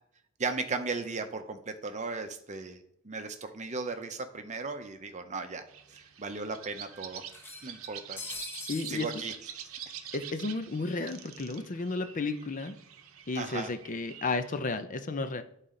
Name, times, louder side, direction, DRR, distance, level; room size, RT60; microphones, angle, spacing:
voice 1, 0.4-5.6 6.2-7.2 7.6-8.2 8.9-9.7 13.3-13.7, right 4 dB, 35° right, 8 dB, 0.7 m, -36 dB
sound 1, 4.0-4.1 4.3-4.4 5.4-5.5 5.9-6.0 7.3-9.0, left 3 dB, 10° left, 0.9 m, -43 dB
sound 2, 5.7-14.6, right 9 dB, 80° right, 0.7 m, -46 dB
voice 2, 8.7-9.1 10.1-12.8 13.3-15.4, left 3 dB, 40° left, 10 dB, 0.5 m, -33 dB
10.5 x 4.1 x 3.8 m, 0.73 s
head